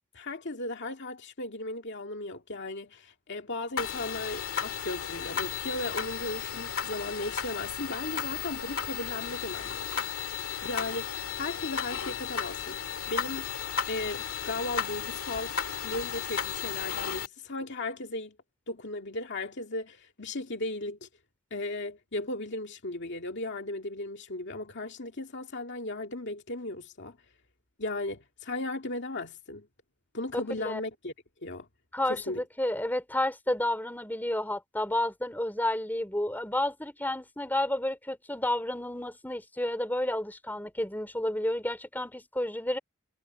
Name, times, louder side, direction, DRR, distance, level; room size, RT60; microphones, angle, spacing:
voice 1, 0.1-10.1 10.5-13.5 13.9-18.3 18.7-21.1 21.5-27.2 27.8-29.7 30.1-31.1 31.4-31.7 32.1-32.4, left 2 dB, 55° left, 2.2 m, -36 dB
sound 1, 3.8-17.3, left 7 dB, 70° left, 2.1 m, -34 dB
voice 2, 31.9-42.8, left 1 dB, 10° left, 4.2 m, -31 dB
head